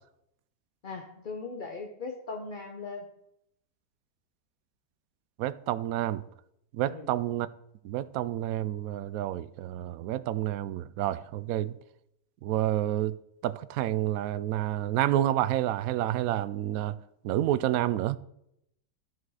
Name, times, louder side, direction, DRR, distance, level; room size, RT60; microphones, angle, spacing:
voice 1, 0.8-3.1 6.8-7.1, left 4 dB, 40° left, 0.7 m, -39 dB
voice 2, 5.4-6.2 6.7-7.5 7.8-11.7 12.4-13.2 13.4-17.0 17.2-18.2, right 13 dB, 70° right, 0.8 m, -29 dB
13.0 x 6.3 x 4.8 m
omnidirectional pair, 1.9 m